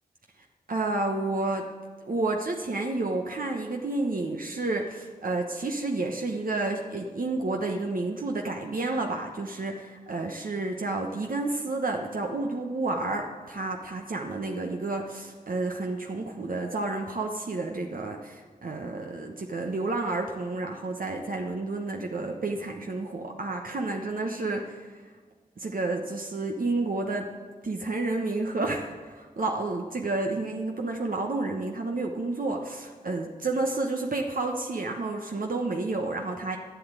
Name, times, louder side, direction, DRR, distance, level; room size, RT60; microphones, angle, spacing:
voice 1, 0.7-1.7 2.0-25.1 25.6-27.3 27.6-36.6, right 2 dB, 60° right, 1 dB, 1.1 m, -30 dB
11.5 x 8.3 x 9.0 m, 1.4 s
wide cardioid pair, 60°, 16 cm